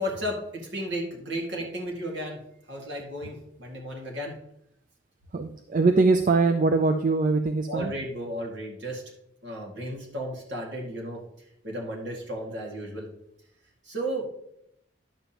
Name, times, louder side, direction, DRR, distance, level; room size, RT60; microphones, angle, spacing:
voice 1, 0.0-2.4 2.7-4.4 7.7-9.0 9.4-11.2 11.6-13.1 13.8-14.3, equal, 70° right, -1 dB, 2.1 m, -34 dB
voice 2, 5.3-7.9, right 3 dB, 45° right, 8 dB, 0.4 m, -22 dB
10.0 x 6.9 x 2.9 m, 0.78 s
head